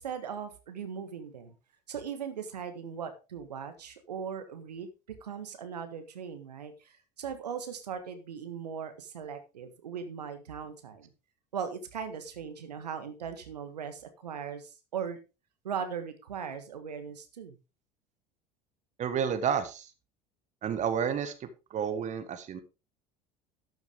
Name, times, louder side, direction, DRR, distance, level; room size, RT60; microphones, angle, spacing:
voice 1, 0.0-1.5 1.9-4.9 5.2-11.1 11.5-15.2 15.6-17.6, right 7 dB, 75° right, 8 dB, 1.6 m, -39 dB
voice 2, 19.0-19.9 20.6-22.6, right 7 dB, 35° right, 10 dB, 1.4 m, -31 dB
12.0 x 8.0 x 3.6 m, 0.29 s
figure-of-eight pair, 70°, 21 cm